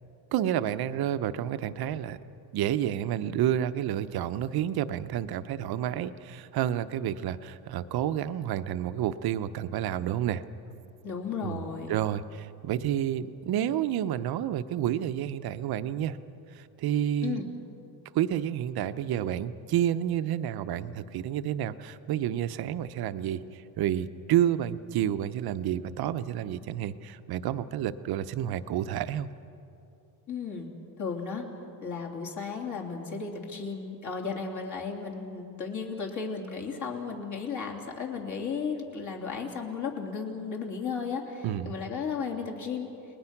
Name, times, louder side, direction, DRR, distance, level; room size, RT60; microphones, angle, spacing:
voice 1, 0.3-2.2 2.5-10.4 11.4-11.6 11.9-16.2 16.5-17.4 18.1-29.3 41.4-41.8, right 11 dB, 50° right, 11 dB, 0.9 m, -30 dB
voice 2, 11.0-12.0 17.2-17.5 30.3-30.7 31.0-31.4 31.8-42.9, left 5 dB, 40° left, 0 dB, 3.3 m, -34 dB
30.0 x 20.5 x 6.0 m, 2.8 s
cardioid pair, 135°, 46 cm